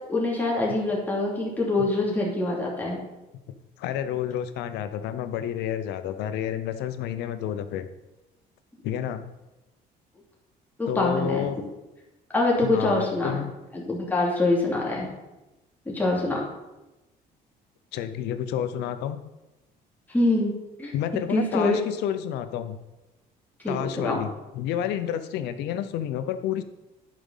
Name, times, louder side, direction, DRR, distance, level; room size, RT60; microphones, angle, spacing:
voice 1, 0.1-3.0 10.8-11.5 12.3-13.4 13.7-15.1 15.9-16.5 20.1-20.5 20.8-20.9 21.3-21.9 23.6-24.2, left 2 dB, 10° left, -3 dB, 2.8 m, -25 dB
voice 2, 3.8-7.9 8.8-9.2 10.9-11.6 12.6-13.5 17.9-19.2 20.9-22.8 23.7-26.6, left 10 dB, 85° left, 11 dB, 0.7 m, -30 dB
11.0 x 5.1 x 5.6 m, 1.0 s
cardioid pair, 110°, 17 cm